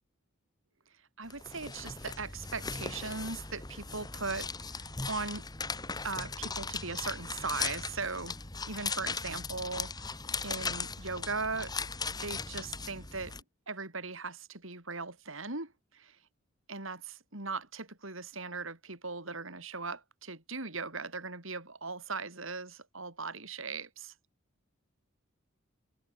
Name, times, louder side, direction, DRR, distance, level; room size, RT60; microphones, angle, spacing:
voice 1, 1.2-5.5 6.0-8.4 8.7-10.1 10.4-11.7 12.2-16.2 16.7-24.1, right 4 dB, 70° right, 5.5 m, -39 dB
sound 1, 1.3-13.4, left 4 dB, 20° left, 1.8 m, -38 dB
head